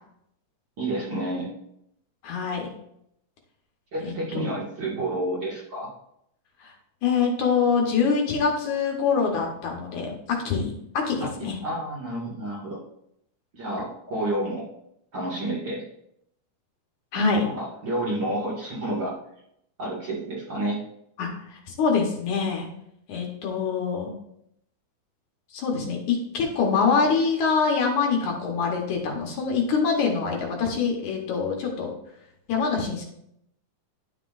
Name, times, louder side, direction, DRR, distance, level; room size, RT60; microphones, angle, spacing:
voice 1, 0.8-1.5 3.9-5.9 10.5-10.6 11.2-12.8 13.5-14.7 15.1-15.9 17.5-19.1 19.8-20.8, right 1 dB, 40° right, -6 dB, 2.2 m, -30 dB
voice 2, 2.2-2.7 4.0-4.4 6.6-6.7 7.0-11.6 17.1-17.5 21.2-22.7 23.1-24.1 25.5-31.9 32.5-33.0, left 5 dB, 70° left, 1 dB, 2.4 m, -25 dB
11.0 x 5.9 x 2.5 m, 0.75 s
omnidirectional pair, 3.7 m